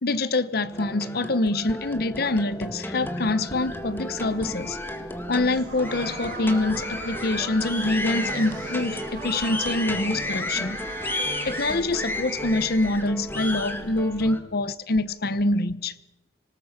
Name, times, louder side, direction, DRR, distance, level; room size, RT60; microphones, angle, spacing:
voice 1, 0.0-4.8 5.3-10.8 11.4-15.9, left 2 dB, 55° left, 0.9 m, -25 dB
sound 1, 0.7-14.4, left 1 dB, 10° left, 1.8 m, -33 dB
sound 2, 3.4-14.3, right 2 dB, 55° right, 6.0 m, -40 dB
25.5 x 19.0 x 5.7 m
head